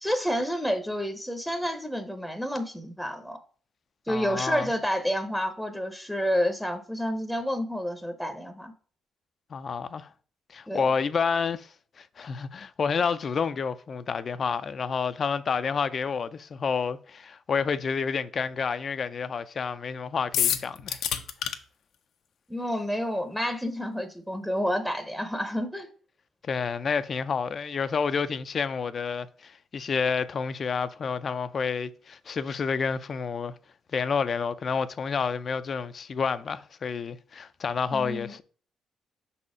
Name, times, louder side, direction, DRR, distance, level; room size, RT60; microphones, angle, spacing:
voice 1, 0.0-3.4 4.1-8.7 10.7-10.8 22.5-25.9 37.9-38.3, equal, ahead, 0.7 m, -29 dB
voice 2, 4.1-4.7 9.5-10.1 10.5-11.7 12.0-21.0 26.4-33.5 33.9-38.4, left 5 dB, 45° left, 0.5 m, -29 dB
sound 1, 20.3-21.6, left 9 dB, 80° left, 0.7 m, -26 dB
5.4 x 4.2 x 4.9 m
cardioid pair, 90°, 0 cm